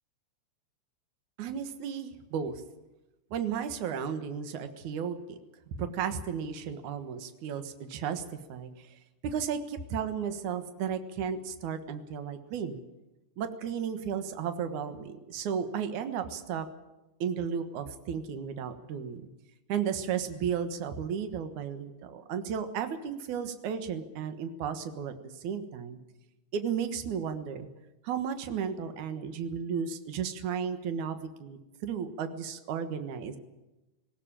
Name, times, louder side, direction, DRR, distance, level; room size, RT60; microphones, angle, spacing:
voice 1, 1.4-2.6 3.3-5.4 5.8-8.2 8.5-12.8 13.4-16.7 17.2-19.2 19.7-26.0 26.5-27.7 28.0-33.4, right 7 dB, 75° right, 9 dB, 1.7 m, -34 dB
19.5 x 17.5 x 8.9 m, 1.0 s
omnidirectional pair, 5.7 m